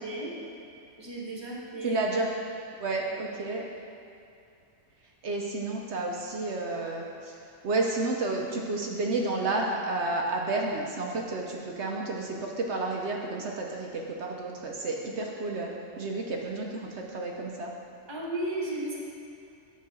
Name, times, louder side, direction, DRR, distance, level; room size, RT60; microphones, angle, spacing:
voice 1, 0.0-0.3 1.0-2.0 3.1-3.2 18.1-19.0, right 1 dB, 20° right, -4 dB, 1.2 m, -34 dB
voice 2, 1.8-2.3 2.8-3.7 5.2-7.4 7.6-17.7, right 2 dB, 60° right, 0 dB, 0.9 m, -31 dB
8.4 x 4.5 x 6.1 m, 2.6 s
omnidirectional pair, 1.5 m